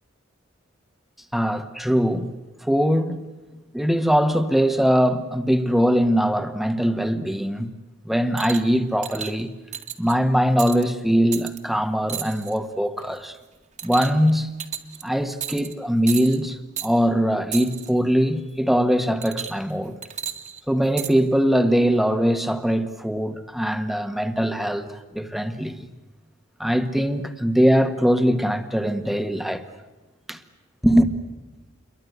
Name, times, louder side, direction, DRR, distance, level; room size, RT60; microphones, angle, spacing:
voice 1, 1.3-2.3 2.6-3.2 3.7-7.7 8.0-9.5 10.0-13.4 13.8-14.5 15.0-19.9 20.7-25.9 26.6-29.6 30.3-30.4 30.8-31.1, equal, ahead, 1.6 m, -21 dB
sound 1, 8.4-8.7 9.0-9.3 9.7-10.1 10.6-10.8 11.3-11.6 12.1-12.6 13.0-13.2 13.8-14.3 14.6-15.0 15.4-15.7 16.1-16.4 16.8-16.9 17.5-17.9 19.2-19.7 20.0-21.1 21.9-22.0, right 9 dB, 40° right, 2.1 m, -33 dB
29.0 x 23.0 x 8.1 m
head